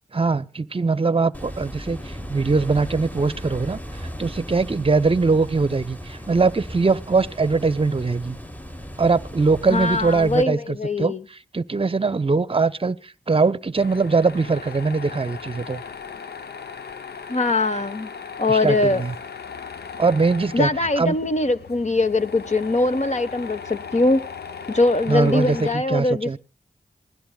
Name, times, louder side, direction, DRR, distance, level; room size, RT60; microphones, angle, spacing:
voice 1, 0.1-3.8 4.2-8.4 9.0-13.0 13.3-15.8 18.5-19.2 20.0-20.7 21.0-21.2 25.1-26.4, right 4 dB, 35° right, 0.7 m, -21 dB
sound 1, 1.3-10.4, equal, 10° left, 1.1 m, -37 dB
voice 2, 9.7-11.2 17.3-18.1 18.4-19.0 20.5-24.2 24.7-26.4, left 2 dB, 45° left, 1.1 m, -22 dB
Tools, 13.8-25.8, left 6 dB, 80° left, 0.7 m, -37 dB
27.0 x 17.0 x 2.3 m
cardioid pair, 45°, 17 cm